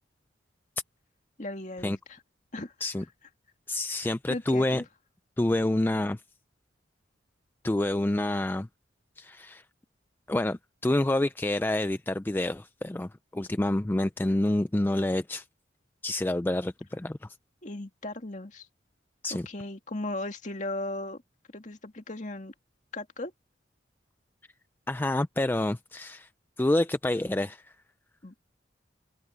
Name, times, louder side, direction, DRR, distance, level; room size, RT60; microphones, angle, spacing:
voice 1, 1.4-2.2 2.5-2.7 4.3-4.8 17.6-18.7 19.3-21.2 21.5-22.5 22.9-23.3 28.2-28.3, left 2 dB, 40° left, 2.2 m, -37 dB
voice 2, 3.7-4.8 5.4-6.2 7.6-8.7 9.2-9.6 10.3-15.5 16.0-17.2 19.2-19.5 24.9-26.3 26.6-27.7, left 1 dB, 10° left, 0.3 m, -28 dB
open air
head